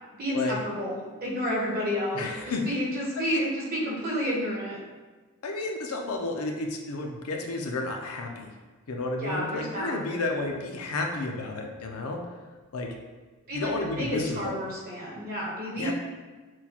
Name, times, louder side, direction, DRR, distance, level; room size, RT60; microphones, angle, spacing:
voice 1, 0.2-2.3 2.7-4.8 9.2-10.0 13.5-15.9, equal, 45° right, -4 dB, 1.0 m, -30 dB
voice 2, 2.1-2.6 3.2-3.4 5.4-8.5 8.9-12.2 12.7-13.0 13.5-14.6 15.8-15.9, left 2 dB, 80° left, 2 dB, 0.5 m, -31 dB
6.0 x 2.3 x 2.9 m, 1.3 s
head